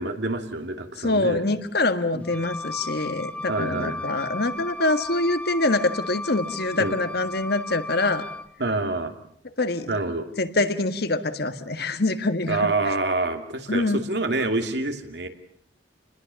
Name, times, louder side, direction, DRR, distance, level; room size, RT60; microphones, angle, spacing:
voice 1, 0.0-1.4 2.1-2.2 3.5-4.0 6.8-7.0 8.6-9.1 9.9-10.3 12.5-15.3, right 2 dB, 70° right, 6 dB, 2.7 m, -27 dB
voice 2, 1.0-8.3 9.6-9.9 10.4-12.7 13.7-14.0, left 2 dB, 65° left, 10 dB, 1.7 m, -25 dB
Wind instrument woodwind instrument, 2.2-8.5, left 2 dB, 10° left, 1.3 m, -35 dB
29.0 x 20.5 x 7.1 m, 0.67 s
head